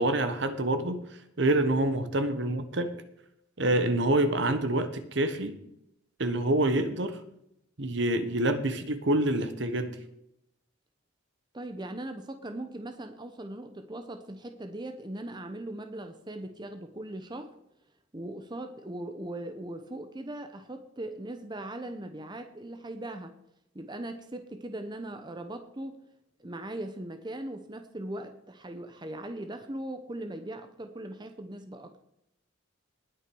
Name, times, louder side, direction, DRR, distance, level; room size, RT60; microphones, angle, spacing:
voice 1, 0.0-2.9 3.6-5.6 6.2-7.2 7.8-9.9, right 1 dB, 60° right, 10 dB, 1.2 m, -27 dB
voice 2, 11.5-17.5 18.1-23.4 23.7-26.0 26.4-32.0, right 1 dB, 20° right, 7 dB, 0.8 m, -39 dB
19.5 x 6.5 x 4.7 m, 0.78 s
head